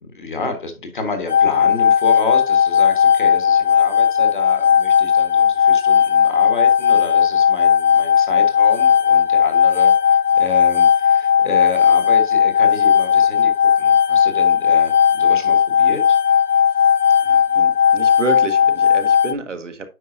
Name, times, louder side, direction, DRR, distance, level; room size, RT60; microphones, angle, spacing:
voice 1, 0.0-9.9 10.4-16.2, left 3 dB, 35° left, 1.3 m, -30 dB
sound 1, 1.3-19.3, left 8 dB, 80° left, 0.9 m, -15 dB
voice 2, 17.2-19.9, right 3 dB, 55° right, 1.3 m, -29 dB
9.3 x 5.3 x 2.6 m
hypercardioid pair, 170°, 45 cm